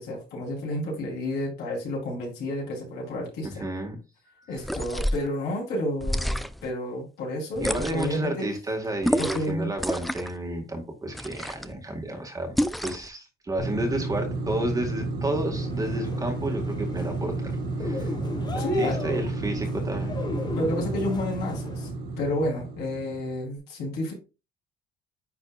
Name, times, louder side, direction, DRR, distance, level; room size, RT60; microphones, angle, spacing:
voice 1, 0.0-3.6 4.5-8.5 9.2-9.7 18.6-19.2 20.5-21.9 22.2-24.1, left 1 dB, 75° left, -2 dB, 3.9 m, -30 dB
voice 2, 3.4-4.0 4.5-4.6 7.6-17.5 17.8-18.1 18.5-20.1, right 1 dB, 20° right, 3 dB, 1.9 m, -31 dB
sound 1, 4.6-5.3 6.0-6.7 7.6-8.2 9.0-9.5 9.8-10.4 11.1-11.7 12.6-13.1, equal, ahead, 0.3 m, -28 dB
sound 2, 13.6-23.4, right 2 dB, 70° right, 2.3 m, -31 dB
sound 3, 15.5-21.9, left 4 dB, 25° left, 0.9 m, -38 dB
9.8 x 4.3 x 2.5 m, 0.30 s
cardioid pair, 110°, 17 cm